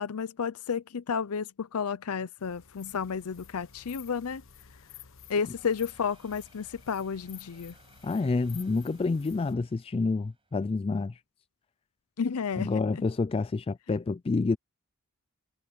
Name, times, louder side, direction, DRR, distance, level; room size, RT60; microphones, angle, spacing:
voice 1, 0.0-4.4 5.3-7.7 12.2-12.8, left 6 dB, 85° left, 0.6 m, -32 dB
sound 1, 2.4-9.5, left 9 dB, 65° left, 1.3 m, -52 dB
sound 2, 5.3-10.8, right 3 dB, 25° right, 6.9 m, -63 dB
voice 2, 8.0-11.2 12.6-14.6, left 3 dB, 25° left, 0.3 m, -28 dB
head